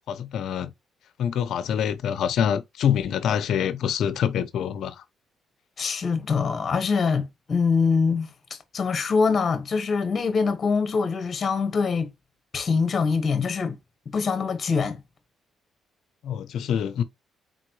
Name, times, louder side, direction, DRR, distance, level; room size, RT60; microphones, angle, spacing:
voice 1, 0.1-0.7 1.2-5.0 16.2-17.0, left 8 dB, 70° left, 0.7 m, -25 dB
voice 2, 5.8-8.3 8.7-12.1 12.5-13.8 14.0-15.0, left 5 dB, 40° left, 1.3 m, -24 dB
4.1 x 3.8 x 3.2 m
cardioid pair, 90°, 0 cm